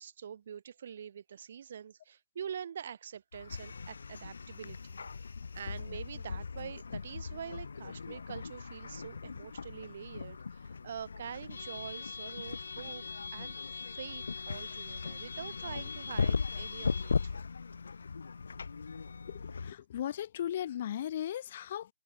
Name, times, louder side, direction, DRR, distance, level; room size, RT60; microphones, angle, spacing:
voice 1, 0.0-5.0 5.5-17.4, right 8 dB, 50° right, 2.6 m, -45 dB
sound 1, 3.3-19.7, left 5 dB, 75° left, 0.4 m, -38 dB
voice 2, 19.3-21.9, left 11 dB, 40° left, 1.7 m, -37 dB
hypercardioid pair, 155°, 0 cm